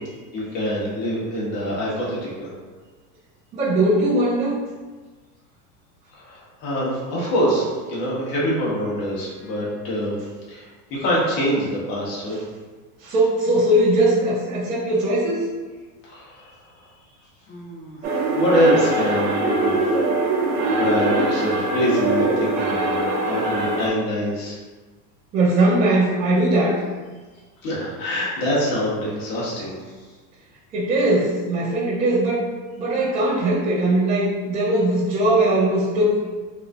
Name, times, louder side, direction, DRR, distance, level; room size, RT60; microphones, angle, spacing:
voice 1, 0.0-2.5 6.1-10.2 10.5-12.4 16.0-16.9 17.5-18.0 18.3-19.8 20.5-24.6 27.6-29.7, equal, 45° left, -7 dB, 1.2 m, -25 dB
voice 2, 3.5-4.6 13.0-15.4 25.3-26.8 30.7-32.5 32.8-36.2, right 1 dB, 15° right, -11 dB, 0.4 m, -20 dB
sound 1, 18.0-23.9, right 2 dB, 50° right, 0.8 m, -22 dB
4.0 x 2.7 x 2.5 m, 1.3 s
supercardioid pair, 145°, 49 cm